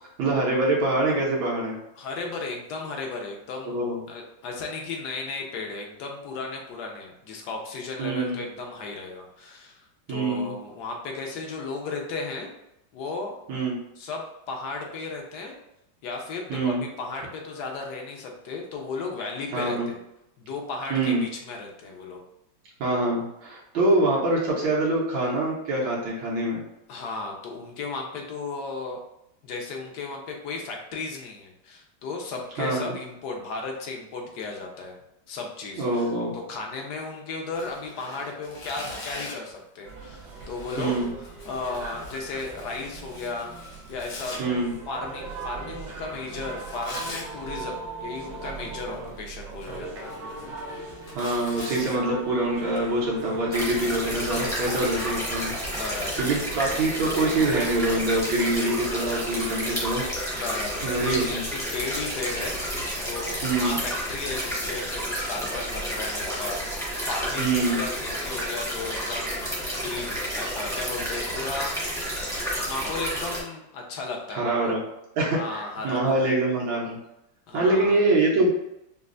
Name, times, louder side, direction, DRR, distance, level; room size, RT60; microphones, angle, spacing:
voice 1, 0.2-1.8 3.7-4.0 8.0-8.4 10.1-10.5 13.5-13.7 16.5-16.8 19.5-19.9 20.9-21.2 22.8-26.6 32.6-32.9 35.8-36.3 40.8-41.1 44.4-44.7 51.1-55.5 56.2-60.0 60.8-61.4 63.4-63.8 67.4-67.8 74.3-74.8 75.2-77.0 77.5-78.5, right 2 dB, 75° right, -4 dB, 1.6 m, -25 dB
voice 2, 2.0-9.8 10.1-12.5 12.9-13.4 14.0-15.5 16.0-20.0 20.4-22.2 26.9-29.0 29.4-34.9 35.3-41.1 41.5-43.5 43.9-44.4 44.9-50.2 50.4-50.7 55.7-56.3 60.3-69.4 69.7-72.2 72.6-74.7 75.3-76.3 77.5-78.0, left 3 dB, 65° left, 1 dB, 1.2 m, -35 dB
Tearing, 37.5-39.5 40.3-44.4 46.5-47.3 48.6-49.1 49.5-51.9, left 2 dB, 85° left, 1.7 m, -42 dB
sound 1, 39.8-58.2, right 3 dB, 60° right, 1.2 m, -40 dB
sound 2, 53.5-73.4, equal, 5° left, 0.6 m, -31 dB
5.3 x 2.0 x 2.5 m, 0.84 s
omnidirectional pair, 2.1 m